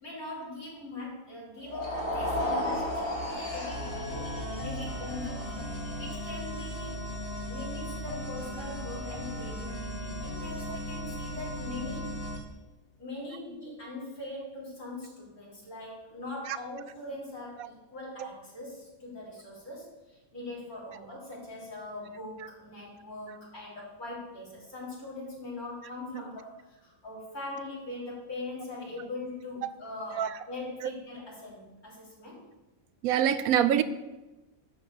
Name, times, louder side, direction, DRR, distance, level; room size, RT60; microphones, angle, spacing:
voice 1, 0.0-4.3 4.6-5.6 6.0-7.1 7.5-12.1 13.0-32.4, left 2 dB, 85° left, -6 dB, 4.2 m, -41 dB
sound 1, 1.6-7.9, left 1 dB, 60° left, 3.4 m, -35 dB
sound 2, 3.7-12.4, equal, 45° left, 2.0 m, -37 dB
voice 2, 33.0-33.8, right 10 dB, 80° right, 14 dB, 1.1 m, -26 dB
11.5 x 5.3 x 6.8 m, 1.1 s
omnidirectional pair, 1.5 m